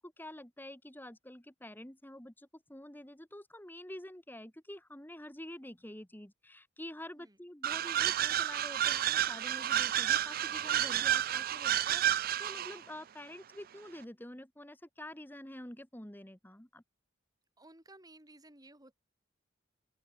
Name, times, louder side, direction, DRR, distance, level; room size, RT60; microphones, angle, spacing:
voice 1, 0.0-16.8, left 1 dB, 10° left, 1.9 m, -48 dB
sound 1, 7.6-12.8, right 11 dB, 50° right, 0.5 m, -30 dB
voice 2, 17.6-18.9, right 2 dB, 20° right, 7.7 m, -56 dB
open air
head